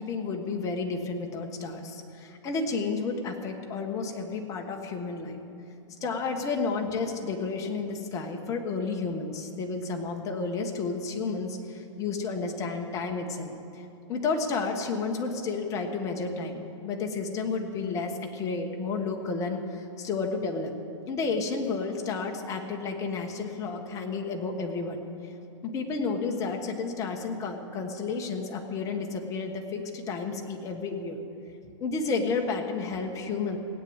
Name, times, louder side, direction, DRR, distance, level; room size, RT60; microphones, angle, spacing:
voice 1, 0.0-5.4 6.0-20.7 21.1-25.0 25.6-31.2 31.8-33.6, left 4 dB, 20° left, 3 dB, 1.3 m, -31 dB
17.0 x 9.3 x 8.0 m, 2.7 s
hypercardioid pair, 155°, 16 cm